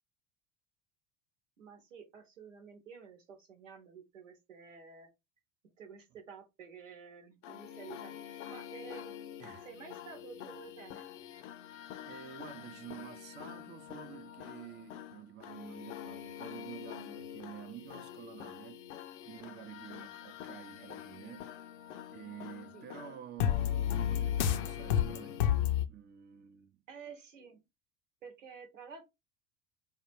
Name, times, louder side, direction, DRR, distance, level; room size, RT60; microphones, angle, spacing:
voice 1, 1.6-5.1 5.8-9.2 9.6-11.1 19.9-20.2 22.7-22.9 26.9-27.6 28.2-29.1, right 6 dB, 85° right, 1.0 m, -51 dB
sound 1, 7.4-25.9, left 10 dB, 70° left, 0.6 m, -37 dB
voice 2, 12.0-18.9 19.2-21.6 22.1-25.5 25.9-26.8, right 10 dB, 30° right, 0.6 m, -49 dB
3.7 x 2.3 x 4.4 m
figure-of-eight pair, 65°, 37 cm